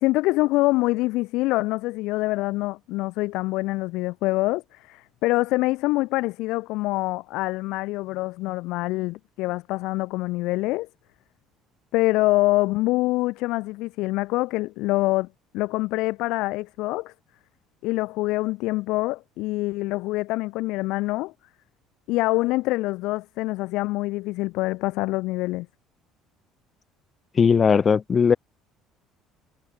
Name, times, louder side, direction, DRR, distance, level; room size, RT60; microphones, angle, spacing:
voice 1, 0.0-10.9 11.9-15.3 15.5-17.1 17.8-21.3 22.1-25.7, left 20 dB, 65° left, 1.7 m, -25 dB
voice 2, 27.4-28.4, left 6 dB, 25° left, 2.3 m, -18 dB
cardioid pair, 165°, 0 cm